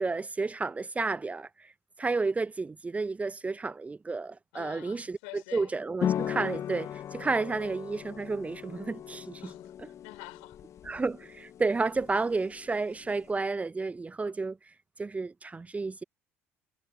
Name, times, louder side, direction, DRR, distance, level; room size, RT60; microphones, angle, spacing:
voice 1, 0.0-1.5 2.0-9.4 10.8-14.6 15.0-16.0, right 3 dB, 20° right, 0.9 m, -31 dB
voice 2, 4.5-5.7 6.4-6.5 9.4-10.6, left 38 dB, 65° left, 3.7 m, -47 dB
sound 1, 6.0-13.3, left 10 dB, 40° left, 1.1 m, -38 dB
figure-of-eight pair, 55°, 7 cm